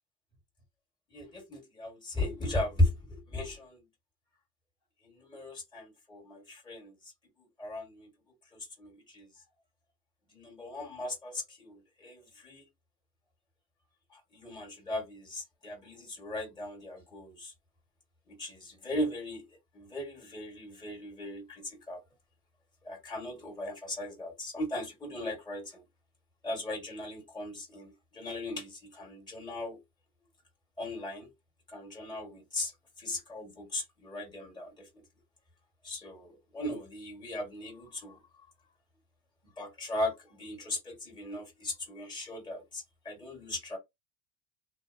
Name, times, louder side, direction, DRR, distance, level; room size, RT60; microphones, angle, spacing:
voice 1, 1.1-3.8 5.0-7.1 7.6-8.1 8.5-9.3 10.3-12.6 14.1-17.5 18.3-19.4 19.7-22.0 22.8-25.8 26.4-29.8 30.8-31.3 31.7-32.7 33.0-35.0 35.8-38.2 39.6-43.8, left 1 dB, 10° left, 1.4 m, -37 dB
2.4 x 2.1 x 2.5 m
hypercardioid pair, 100°, 49 cm